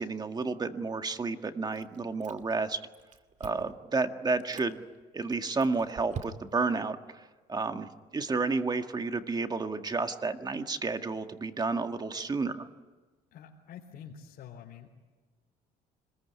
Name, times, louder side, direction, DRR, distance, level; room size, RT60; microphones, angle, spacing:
voice 1, 0.0-2.8 3.4-4.8 5.1-12.7, right 4 dB, 25° right, 7 dB, 1.9 m, -31 dB
Chewing mastication, 1.7-2.7 2.9-3.8 4.3-4.7 5.3-6.7, right 6 dB, 45° right, 2.3 m, -44 dB
voice 2, 13.3-14.9, left 8 dB, 65° left, -1 dB, 3.9 m, -47 dB
26.5 x 21.0 x 9.6 m, 1.3 s
cardioid pair, 110°, 17 cm